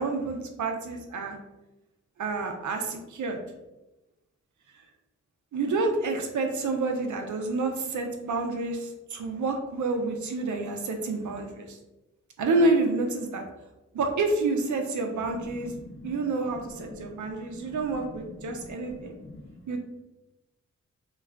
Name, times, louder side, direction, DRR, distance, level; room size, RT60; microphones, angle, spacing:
voice 1, 0.0-1.4 2.2-3.4 5.5-11.8 12.4-13.4 13.9-15.7 16.0-19.1 19.7-19.8, right 3 dB, 80° right, 3 dB, 0.5 m, -28 dB
voice 2, 15.5-16.2 17.0-17.1 17.6-17.8 18.3-19.6, left 2 dB, 45° left, 3 dB, 0.6 m, -45 dB
2.3 x 2.2 x 3.4 m, 0.99 s
cardioid pair, 65°, 30 cm